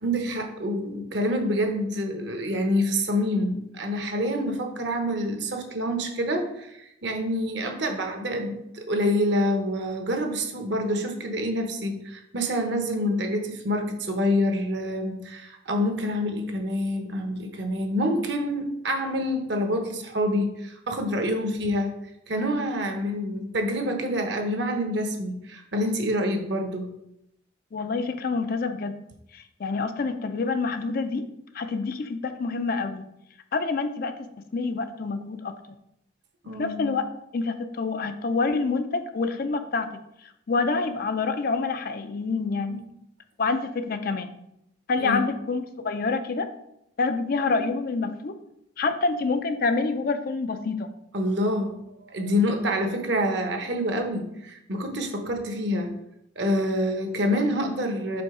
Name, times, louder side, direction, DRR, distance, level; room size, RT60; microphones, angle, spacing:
voice 1, 0.0-21.9 22.3-26.9 36.4-37.0 45.0-45.2 51.1-55.9 56.4-58.2, equal, 55° right, 4 dB, 0.9 m, -27 dB
voice 2, 27.7-29.0 29.3-31.3 31.5-33.1 33.5-34.2 34.5-35.5 36.6-37.1 37.3-39.9 40.2-42.8 43.4-44.3 44.9-46.5 47.0-48.4 48.8-50.9, left 4 dB, 45° left, 9 dB, 0.4 m, -27 dB
5.1 x 3.9 x 4.8 m, 0.81 s
head